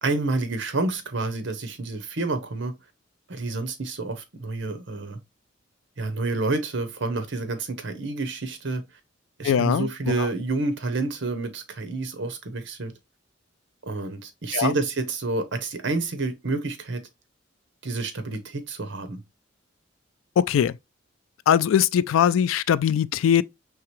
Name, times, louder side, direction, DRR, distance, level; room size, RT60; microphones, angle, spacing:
voice 1, 0.0-2.7 3.3-5.2 6.0-8.8 9.4-12.9 13.8-17.0 17.8-19.2, right 3 dB, 65° right, 0.9 m, -29 dB
voice 2, 9.4-10.3 14.5-14.7 20.4-20.7 21.5-23.4, left 9 dB, 90° left, 0.3 m, -21 dB
4.8 x 3.4 x 3.0 m
head